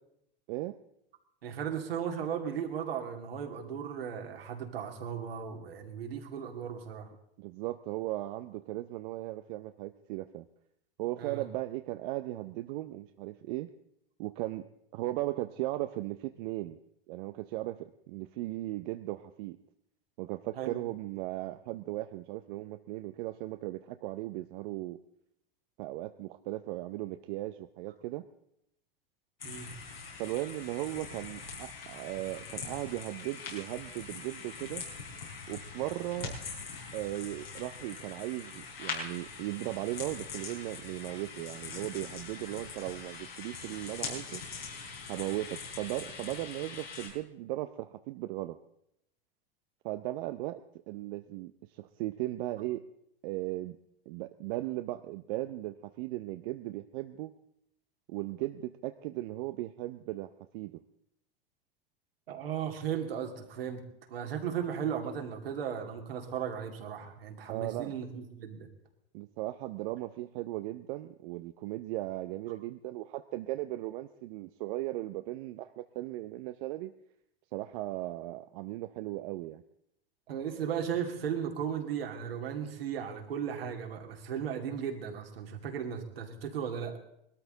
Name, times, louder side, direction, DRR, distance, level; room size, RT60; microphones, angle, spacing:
voice 1, 0.5-0.8 7.4-10.4 11.0-13.7 14.2-14.7 14.9-16.8 17.1-19.6 20.2-25.0 25.8-28.2 30.2-34.8 35.5-36.3 36.9-44.4 45.1-48.6 49.8-52.9 53.2-53.8 54.1-57.3 58.1-60.8 67.5-67.9 69.1-76.9 77.5-79.6, right 16 dB, 55° right, 9 dB, 0.7 m, -37 dB
voice 2, 1.4-7.1 11.2-11.4 20.6-20.8 29.4-29.7 62.3-63.8 64.1-68.7 80.3-87.0, right 8 dB, 75° right, 3 dB, 2.4 m, -36 dB
sound 1, 29.4-47.1, left 5 dB, 85° left, 4.5 m, -43 dB
sound 2, 32.8-35.4 35.7-36.7 37.1-37.4 37.7-37.9, left 4 dB, 65° left, 4.7 m, -59 dB
20.5 x 13.0 x 3.9 m, 0.77 s
hypercardioid pair, 85°, 30 cm